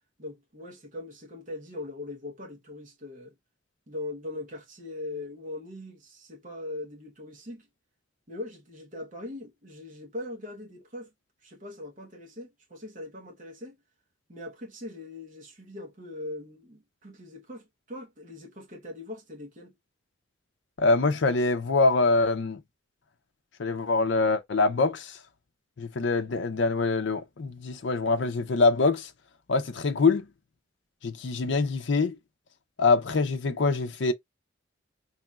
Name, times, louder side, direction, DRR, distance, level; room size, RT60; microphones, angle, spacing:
voice 1, 0.2-3.3 3.9-7.7 8.3-11.1 11.4-13.8 14.3-19.7, left 2 dB, 45° right, 1.0 m, -41 dB
voice 2, 20.8-22.6 23.6-25.2 25.8-29.1 29.5-30.3 31.0-32.2 32.8-34.1, left 3 dB, 65° left, 0.5 m, -24 dB
4.1 x 3.0 x 2.3 m
head